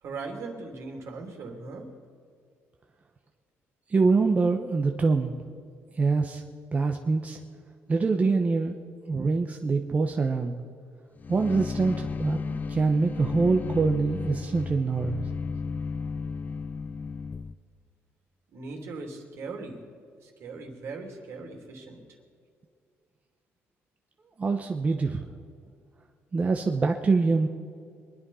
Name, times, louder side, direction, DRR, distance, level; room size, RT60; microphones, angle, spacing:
voice 1, 0.0-1.9 18.5-19.8 20.2-22.0, right 3 dB, 65° right, 2 dB, 3.0 m, -39 dB
voice 2, 3.9-5.3 6.0-6.4 6.7-7.4 7.9-8.8 9.1-10.6 11.3-15.2 24.4-25.3 26.3-27.5, right 4 dB, 30° right, 3 dB, 0.9 m, -24 dB
sound 1, 11.2-17.5, left 5 dB, 35° left, 0.6 m, -34 dB
23.5 x 10.0 x 5.6 m, 2.2 s
cardioid pair, 110°, 5 cm